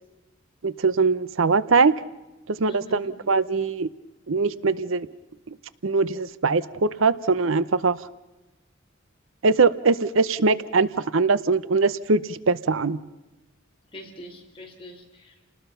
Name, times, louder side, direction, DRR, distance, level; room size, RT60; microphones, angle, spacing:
voice 1, 0.6-1.9 2.5-3.9 4.3-5.1 5.5-5.6 5.8-8.0 9.4-13.0, right 4 dB, 75° right, 16 dB, 0.7 m, -22 dB
voice 2, 2.7-3.1 13.9-15.4, equal, 25° left, 0 dB, 4.0 m, -43 dB
29.5 x 19.5 x 5.7 m, 1.1 s
head